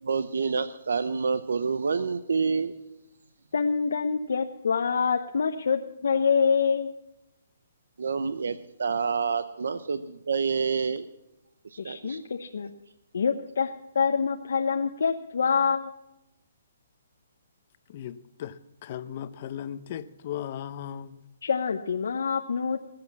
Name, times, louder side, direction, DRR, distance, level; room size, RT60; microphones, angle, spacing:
voice 1, 0.0-2.7 8.0-11.1 11.7-12.2, right 5 dB, 85° right, 12 dB, 0.7 m, -28 dB
voice 2, 3.5-7.0 11.8-12.7 13.1-15.9 21.4-22.8, left 6 dB, 75° left, 5 dB, 0.8 m, -26 dB
voice 3, 17.9-21.3, left 10 dB, 40° left, 13 dB, 0.7 m, -37 dB
19.5 x 7.8 x 7.2 m, 0.90 s
hypercardioid pair, 160°, 0 cm